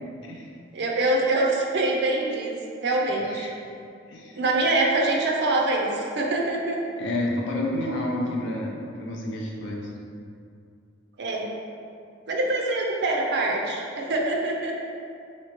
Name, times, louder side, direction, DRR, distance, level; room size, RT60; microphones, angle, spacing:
voice 1, 0.7-2.5 2.8-3.5 4.3-6.8 11.2-11.5 12.3-14.8, right 2 dB, 60° right, -1 dB, 0.5 m, -24 dB
voice 2, 4.1-4.4 7.0-9.9, left 1 dB, 70° left, -2 dB, 0.5 m, -30 dB
3.1 x 2.9 x 2.9 m, 2.4 s
head